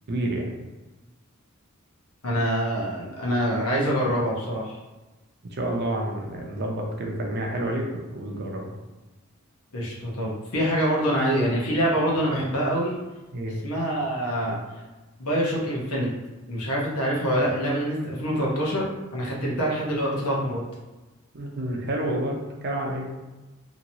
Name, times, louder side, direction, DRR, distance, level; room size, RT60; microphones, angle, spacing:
voice 1, 0.1-0.5 5.4-7.9 8.1-8.8 13.3-13.6 21.3-23.1, right 1 dB, 50° right, 0 dB, 0.6 m, -29 dB
voice 2, 2.2-4.8 9.7-12.9 13.6-14.6 15.2-16.1 16.5-18.9 19.1-20.6, equal, 90° left, -4 dB, 1.0 m, -25 dB
2.9 x 2.8 x 2.7 m, 1.1 s
head